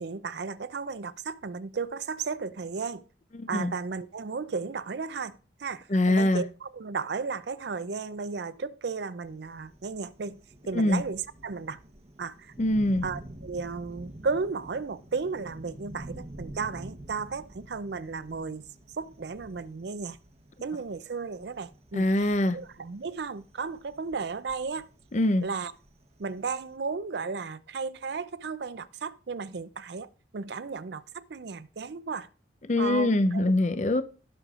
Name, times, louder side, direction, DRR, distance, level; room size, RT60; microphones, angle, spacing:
voice 1, 0.0-3.0 3.5-10.4 10.7-11.8 12.2-12.5 13.0-18.6 19.0-20.2 20.6-24.9 25.4-25.7 26.2-30.1 30.3-32.3 32.8-33.5, right 4 dB, 65° right, 0.5 m, -34 dB
voice 2, 3.3-3.7 5.9-6.5 10.7-11.0 12.6-13.0 21.9-22.6 25.1-25.5 32.7-34.0, left 1 dB, 40° left, 0.6 m, -24 dB
Thunder, 9.2-26.8, right 1 dB, 35° right, 0.9 m, -48 dB
17.5 x 6.5 x 2.5 m
head